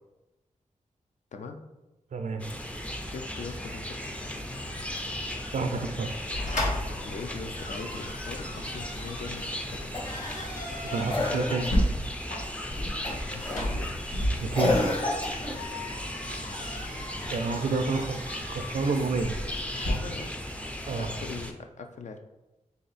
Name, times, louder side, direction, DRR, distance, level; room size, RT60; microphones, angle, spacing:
voice 1, 1.3-1.6 3.0-4.5 7.0-9.9 13.1-13.9 14.5-15.1 19.9-20.3 21.0-22.2, left 4 dB, 65° left, 6 dB, 0.4 m, -41 dB
voice 2, 2.1-2.4 5.5-6.1 10.8-11.7 14.4-14.8 17.3-19.4 20.9-21.1, right 3 dB, 70° right, 7 dB, 0.4 m, -29 dB
sound 1, 2.4-21.5, left 1 dB, 10° left, 0.4 m, -37 dB
sound 2, 6.3-19.9, equal, 85° left, 1.1 m, -34 dB
Cough, 9.9-10.3 11.1-11.9 13.0-13.4 14.5-15.6 18.7-19.5 21.0-21.1, left 2 dB, 40° left, 1.0 m, -30 dB
3.4 x 2.8 x 4.0 m, 1.0 s
wide cardioid pair, 80°, 13 cm